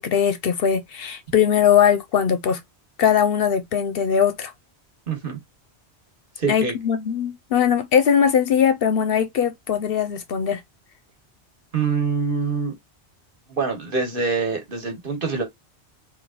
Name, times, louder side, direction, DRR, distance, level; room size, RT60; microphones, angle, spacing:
voice 1, 0.0-2.6 3.0-4.5 6.5-10.6, left 8 dB, 65° left, 0.8 m, -20 dB
voice 2, 5.1-5.4 6.4-6.7 11.7-12.7 13.5-15.4, right 5 dB, 55° right, 1.4 m, -25 dB
3.4 x 2.5 x 3.6 m
omnidirectional pair, 1.1 m